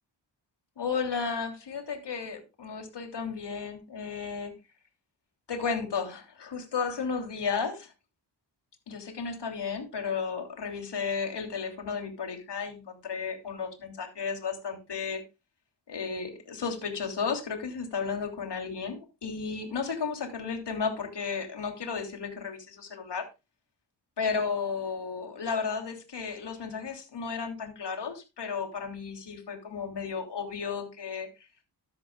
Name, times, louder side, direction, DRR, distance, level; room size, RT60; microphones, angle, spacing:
voice 1, 0.8-4.5 5.5-7.9 8.9-15.2 15.9-23.3 24.2-31.3, left 5 dB, 70° left, 4 dB, 3.2 m, -33 dB
14.0 x 10.5 x 2.4 m, 0.26 s
wide cardioid pair, 95°, 43 cm